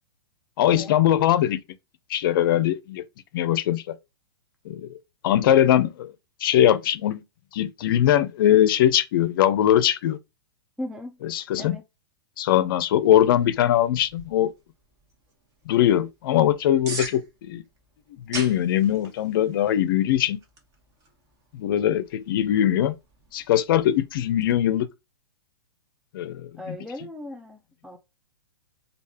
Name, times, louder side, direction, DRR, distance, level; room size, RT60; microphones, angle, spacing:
voice 1, 0.6-1.6 2.1-3.0 3.3-3.8 4.7-4.9 5.2-6.1 6.4-7.2 7.5-10.2 11.2-11.8 12.4-14.5 15.7-17.6 18.3-20.4 21.5-22.9 23.3-24.9 26.1-26.8, left 11 dB, 55° left, 0.6 m, -21 dB
voice 2, 10.8-11.2 11.6-11.8 26.6-28.0, left 1 dB, 5° right, 0.4 m, -37 dB
sound 1, 14.0-24.5, right 3 dB, 25° right, 1.1 m, -43 dB
3.3 x 2.4 x 3.5 m
hypercardioid pair, 145°, 14 cm